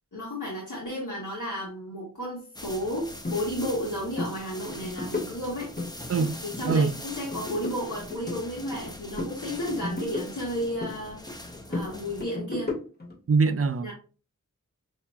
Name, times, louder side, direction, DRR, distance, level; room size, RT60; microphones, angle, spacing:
voice 1, 0.1-5.7 6.4-11.2 11.7-12.7 13.8-13.9, equal, 65° left, 1.4 m, -33 dB
sound 1, 2.6-12.2, left 1 dB, 10° left, 0.6 m, -43 dB
sound 2, 3.2-3.4 3.7-3.9 4.1-4.3 4.7-5.9 6.2-6.9 7.2-8.9 9.2-11.0 11.3-13.1, left 2 dB, 30° left, 1.8 m, -34 dB
voice 2, 13.3-13.9, right 4 dB, 45° right, 0.4 m, -23 dB
5.6 x 2.7 x 2.3 m
wide cardioid pair, 55°, 32 cm